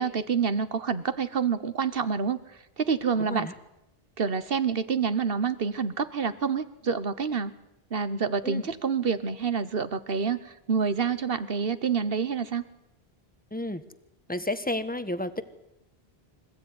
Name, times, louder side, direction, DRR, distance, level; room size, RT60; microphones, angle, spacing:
voice 1, 0.0-2.4 2.8-3.5 4.2-7.5 7.9-12.6, right 6 dB, 65° right, 13 dB, 1.4 m, -27 dB
voice 2, 3.2-3.5 8.4-8.7 13.5-13.8 14.3-15.4, left 1 dB, 10° left, 12 dB, 1.3 m, -31 dB
26.0 x 16.0 x 9.6 m, 0.88 s
omnidirectional pair, 1.0 m